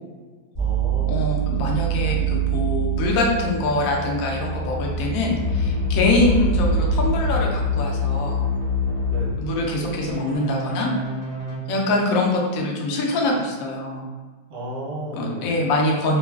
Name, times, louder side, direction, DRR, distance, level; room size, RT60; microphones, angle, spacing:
sound 1, 0.5-10.1, right 9 dB, 35° left, 0.6 m, -27 dB
voice 1, 0.6-1.4 9.1-9.5 14.5-15.5, right 1 dB, 60° right, -7 dB, 1.2 m, -34 dB
voice 2, 1.1-8.4 9.4-10.9 11.7-14.1 15.1-16.2, left 2 dB, 75° left, -1 dB, 0.8 m, -24 dB
sound 2, 5.3-9.3 10.1-11.6, left 5 dB, 25° right, 0.4 m, -25 dB
3.0 x 2.3 x 2.3 m, 1.4 s
omnidirectional pair, 1.9 m